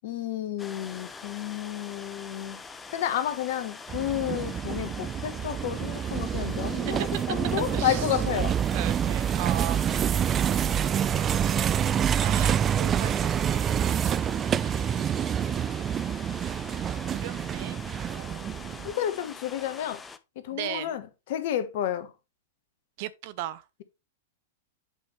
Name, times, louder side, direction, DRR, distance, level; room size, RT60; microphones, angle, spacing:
voice 1, 0.0-2.6 2.9-8.6 18.8-20.0 20.3-21.0 21.3-22.1, left 11 dB, 60° left, 1.3 m, -31 dB
sound 1, 0.6-20.2, left 4 dB, 15° left, 0.7 m, -44 dB
sound 2, 3.9-18.9, right 9 dB, 25° right, 0.3 m, -27 dB
voice 2, 7.7-8.1 8.7-10.3 11.4-14.3 14.6-15.3 17.0-17.8 18.1-19.0 20.5-21.0 23.0-23.6, right 14 dB, 55° right, 0.7 m, -38 dB
8.4 x 5.3 x 3.3 m
hypercardioid pair, 105°, 0 cm